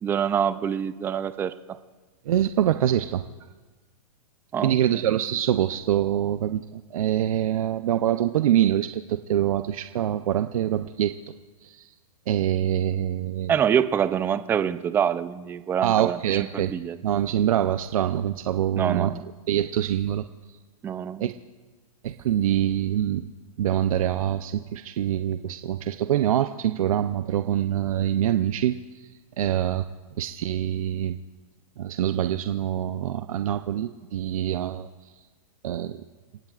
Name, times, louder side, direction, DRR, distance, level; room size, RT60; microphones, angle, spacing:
voice 1, 0.0-1.8 4.5-4.8 13.5-17.0 18.8-19.3 20.8-21.3, right 8 dB, 10° right, 13 dB, 0.4 m, -26 dB
voice 2, 2.3-3.5 4.6-11.2 11.6-11.9 12.3-13.5 15.8-16.7 17.0-19.1 19.5-20.6 21.2-21.3 22.0-23.3 23.6-29.8 30.2-31.2 31.8-35.3 35.6-36.0, right 11 dB, 70° right, 9 dB, 0.7 m, -25 dB
29.0 x 16.5 x 2.5 m, 1.3 s
hypercardioid pair, 145°, 19 cm